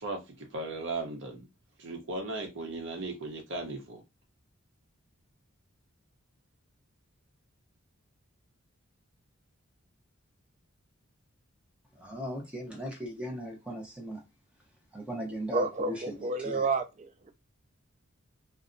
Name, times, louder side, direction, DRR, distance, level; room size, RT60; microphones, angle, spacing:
voice 1, 0.0-1.5 1.8-4.0, right 2 dB, 60° right, 0.8 m, -37 dB
voice 2, 12.0-14.2 14.9-16.7, equal, 5° right, 0.7 m, -38 dB
voice 3, 15.5-17.3, right 3 dB, 35° right, 0.3 m, -30 dB
2.6 x 2.1 x 2.5 m
head